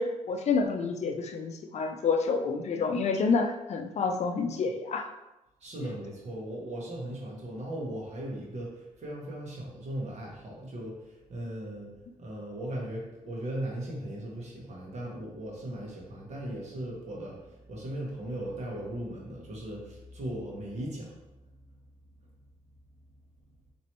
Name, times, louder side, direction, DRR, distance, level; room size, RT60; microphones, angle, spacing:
voice 1, 0.0-5.1, left 4 dB, 55° left, 5 dB, 0.5 m, -28 dB
voice 2, 5.6-11.9 12.2-21.1, right 1 dB, 60° right, -3 dB, 1.4 m, -38 dB
4.3 x 3.0 x 3.0 m, 0.96 s
cardioid pair, 85°, 13 cm